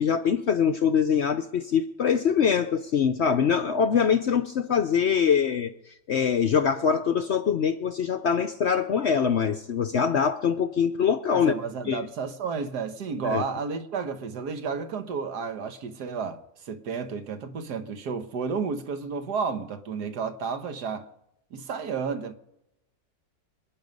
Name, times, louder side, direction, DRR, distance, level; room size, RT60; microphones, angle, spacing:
voice 1, 0.0-5.7 6.1-11.5 11.9-12.1 13.2-13.4, left 7 dB, 60° left, 0.7 m, -23 dB
voice 2, 11.3-21.1 21.5-22.3, right 5 dB, 80° right, 1.7 m, -32 dB
25.5 x 9.1 x 5.3 m
omnidirectional pair, 1.7 m